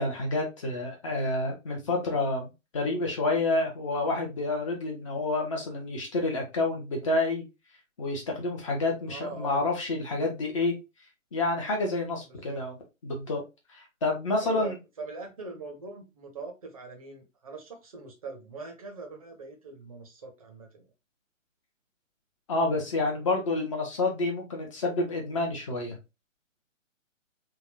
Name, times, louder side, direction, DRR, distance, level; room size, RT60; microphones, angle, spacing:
voice 1, 0.0-7.4 8.0-10.7 11.3-12.7 13.0-13.4 13.7-14.7 22.5-26.0, left 2 dB, 25° left, 2 dB, 0.8 m, -29 dB
voice 2, 9.1-9.6 12.3-12.6 14.4-20.9, right 4 dB, 25° right, 2 dB, 0.7 m, -42 dB
3.6 x 2.3 x 3.2 m, 0.25 s
figure-of-eight pair, 130°, 40 cm